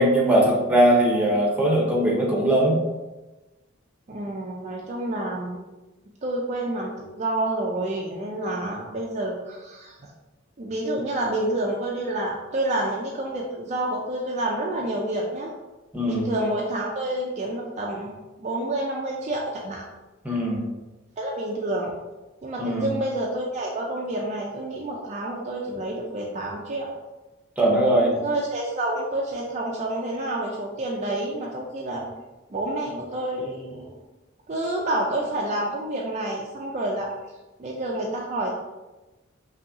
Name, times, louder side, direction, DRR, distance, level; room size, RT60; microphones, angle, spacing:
voice 1, 0.0-2.8 15.9-16.2 20.2-20.6 22.6-22.9 27.6-28.1, right 1 dB, 5° right, -3 dB, 0.8 m, -20 dB
voice 2, 4.1-5.6 6.2-10.1 10.6-15.5 16.0-19.8 21.2-21.9 22.4-26.9 28.1-32.1 32.5-34.0 34.5-37.1 37.6-38.5, right 1 dB, 35° right, -2 dB, 0.4 m, -29 dB
5.4 x 2.7 x 2.7 m, 1.1 s
head